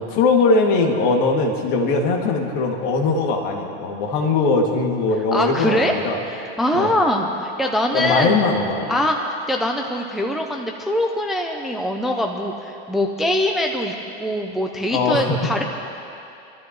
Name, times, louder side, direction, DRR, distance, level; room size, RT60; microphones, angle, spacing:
voice 1, 0.0-6.2 6.7-6.9 7.9-8.9 14.9-15.3, left 3 dB, 50° left, 0 dB, 2.4 m, -20 dB
voice 2, 5.3-5.9 6.3-8.4 8.9-15.6, left 1 dB, ahead, 1 dB, 0.5 m, -23 dB
29.0 x 13.5 x 3.1 m, 2.7 s
supercardioid pair, 155°, 31 cm